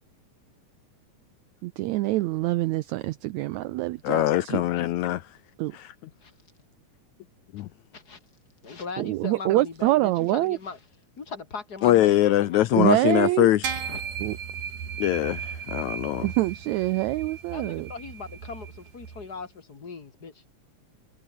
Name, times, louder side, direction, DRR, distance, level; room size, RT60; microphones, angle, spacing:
voice 1, 1.6-4.6 5.6-5.7 9.0-10.6 12.7-13.5 14.2-14.4 16.2-17.9, right 18 dB, 85° right, 1.6 m, -25 dB
voice 2, 4.0-5.2 5.7-5.8 11.8-13.7 15.0-16.3, left 14 dB, 75° left, 1.9 m, -22 dB
voice 3, 8.6-10.8 11.2-12.7 12.9-13.3 13.7-14.0 17.5-20.4, left 4 dB, 35° left, 2.1 m, -39 dB
sound 1, 13.6-19.3, right 7 dB, 70° right, 4.7 m, -36 dB
omnidirectional pair, 3.8 m